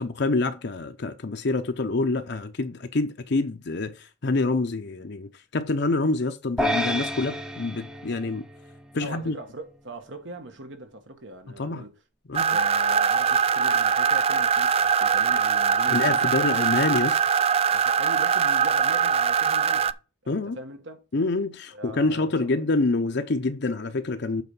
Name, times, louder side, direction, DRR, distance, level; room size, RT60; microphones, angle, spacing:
voice 1, 0.0-8.5 8.9-9.3 11.6-11.8 12.3-12.6 15.9-17.2 20.3-20.6 21.1-24.4, left 3 dB, 60° left, 0.7 m, -26 dB
sound 1, 6.6-9.1, equal, 5° right, 0.7 m, -30 dB
voice 2, 8.9-11.9 12.3-16.6 17.7-19.9 20.2-21.0 21.7-22.5, right 1 dB, 70° right, 1.6 m, -40 dB
sound 2, 12.3-19.9, right 7 dB, 30° right, 0.3 m, -22 dB
8.2 x 4.2 x 5.4 m
head